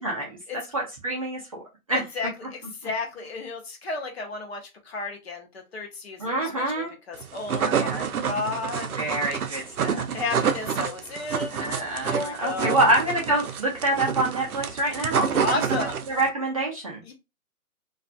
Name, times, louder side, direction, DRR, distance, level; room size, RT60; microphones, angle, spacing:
voice 1, 0.0-0.4 0.7-1.6 1.9-2.0 6.2-6.9 7.6-8.0 9.0-10.0 11.5-17.0, right 1 dB, 25° right, -4 dB, 0.5 m, -26 dB
voice 2, 1.9-9.0 10.1-11.8 12.0-12.9 15.4-16.0 17.0-17.1, left 3 dB, 45° left, 3 dB, 0.7 m, -33 dB
sound 1, 7.2-16.3, right 7 dB, 85° right, 0.6 m, -28 dB
2.4 x 2.4 x 2.4 m, 0.25 s
figure-of-eight pair, 140°, 43 cm